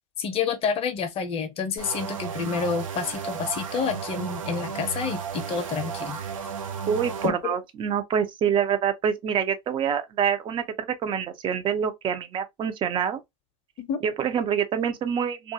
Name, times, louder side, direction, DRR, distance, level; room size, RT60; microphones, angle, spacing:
voice 1, 0.2-6.2 7.2-7.6 13.8-14.0, left 6 dB, 35° left, 0.6 m, -29 dB
sound 1, 1.8-7.3, right 6 dB, 80° right, 0.6 m, -34 dB
voice 2, 6.9-13.2 14.0-15.5, right 8 dB, 30° right, 0.5 m, -26 dB
2.3 x 2.2 x 2.6 m
hypercardioid pair, 95°, 17 cm